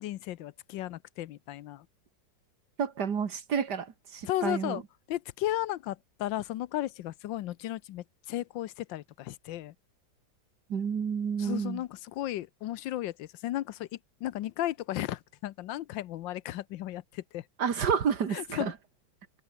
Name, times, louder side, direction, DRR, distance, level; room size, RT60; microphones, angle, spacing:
voice 1, 0.0-1.9 4.3-4.8 5.1-9.7 11.4-17.4 18.3-18.7, left 14 dB, 85° left, 1.4 m, -35 dB
voice 2, 2.8-4.8 10.7-11.8 17.6-18.7, right 7 dB, 60° right, 2.3 m, -30 dB
omnidirectional pair, 2.0 m